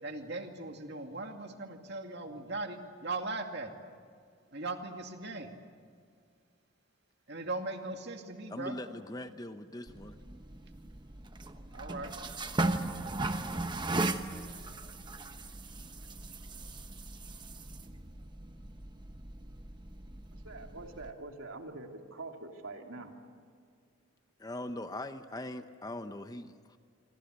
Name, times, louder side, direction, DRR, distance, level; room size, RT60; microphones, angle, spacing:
voice 1, 0.0-3.7 4.5-5.5 7.3-8.8 11.7-12.2, right 2 dB, 50° right, 4 dB, 2.4 m, -39 dB
voice 2, 8.5-10.2 24.4-26.8, left 1 dB, 15° left, 9 dB, 0.8 m, -41 dB
sound 1, 9.9-21.1, right 2 dB, 20° right, 1.1 m, -37 dB
voice 3, 20.3-23.1, right 2 dB, 75° right, 3 dB, 2.8 m, -45 dB
27.5 x 25.0 x 8.1 m, 2.2 s
head